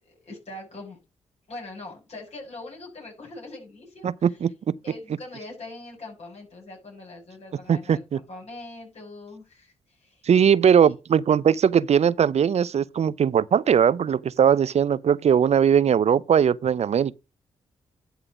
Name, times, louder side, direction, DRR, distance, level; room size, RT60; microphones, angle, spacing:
voice 1, 0.0-1.0 1.5-4.5 4.8-10.2, left 2 dB, 55° left, 6.6 m, -42 dB
voice 2, 4.0-4.5 7.7-8.2 10.3-17.1, right 8 dB, 55° right, 0.5 m, -20 dB
11.0 x 3.9 x 6.0 m
hypercardioid pair, 40°, 13 cm